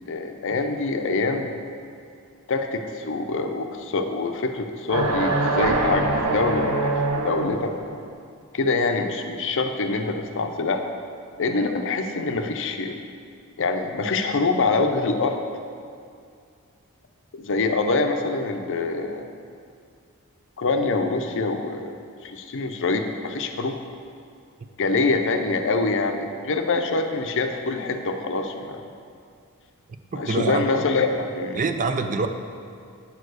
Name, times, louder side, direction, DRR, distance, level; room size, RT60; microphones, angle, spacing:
voice 1, 0.0-1.5 2.5-7.0 7.2-8.1 8.5-10.8 11.4-12.9 13.6-15.4 17.3-19.3 20.6-23.8 24.8-28.8 30.1-31.6, left 3 dB, 60° left, 6 dB, 0.6 m, -25 dB
sound 1, 4.9-7.8, right 2 dB, 75° right, 0.9 m, -23 dB
voice 2, 30.1-30.6 31.5-32.3, right 4 dB, 35° right, 7 dB, 0.4 m, -25 dB
8.7 x 4.6 x 6.3 m, 2.4 s
head